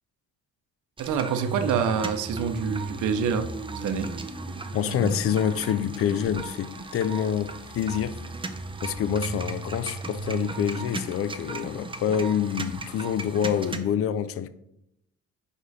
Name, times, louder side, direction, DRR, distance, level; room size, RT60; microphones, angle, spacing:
sound 1, 1.0-13.8, right 3 dB, 15° right, 0.6 m, -35 dB
voice 1, 1.0-4.1, right 6 dB, 80° right, 0.6 m, -27 dB
voice 2, 4.7-8.2 8.8-14.5, left 9 dB, 50° left, 0.4 m, -27 dB
5.2 x 4.8 x 4.1 m
cardioid pair, 90°, 30 cm